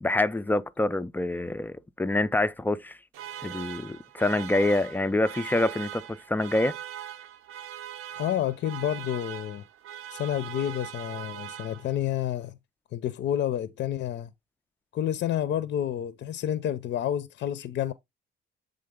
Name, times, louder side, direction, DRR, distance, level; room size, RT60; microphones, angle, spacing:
voice 1, 0.0-3.0 3.4-6.7, left 2 dB, 10° left, 0.3 m, -26 dB
sound 1, 3.1-12.2, right 11 dB, 85° right, 0.7 m, -41 dB
voice 2, 8.2-9.6 10.1-12.6 12.9-14.3 14.9-17.9, left 11 dB, 60° left, 0.5 m, -29 dB
7.7 x 3.7 x 3.6 m
cardioid pair, 135°, 21 cm